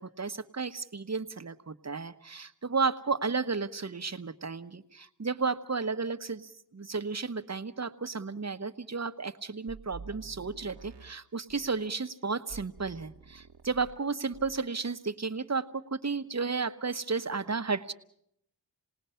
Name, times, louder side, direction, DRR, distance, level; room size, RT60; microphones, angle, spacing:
voice 1, 0.0-17.9, right 4 dB, 40° right, 9 dB, 1.1 m, -33 dB
sound 1, 9.7-11.8 12.5-14.1 14.3-14.7, right 5 dB, 65° right, 1.3 m, -49 dB
28.5 x 19.0 x 5.7 m, 0.71 s
cardioid pair, 50°, 42 cm